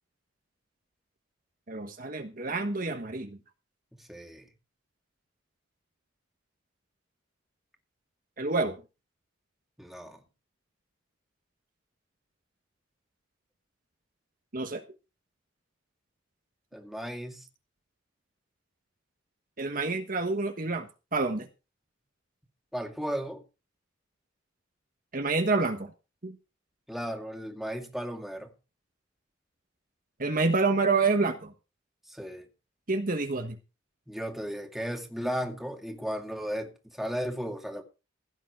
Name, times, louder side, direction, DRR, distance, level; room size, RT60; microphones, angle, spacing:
voice 1, 1.7-3.4 8.4-8.7 14.5-14.8 19.6-21.5 25.1-25.9 26.2-26.3 30.2-31.5 32.9-33.6, right 3 dB, 45° right, 1.3 m, -28 dB
voice 2, 3.9-4.4 9.8-10.2 16.7-17.5 22.7-23.4 26.9-28.5 32.1-32.5 34.1-36.7 37.0-37.8, equal, ahead, 2.3 m, -35 dB
16.0 x 9.0 x 4.6 m
head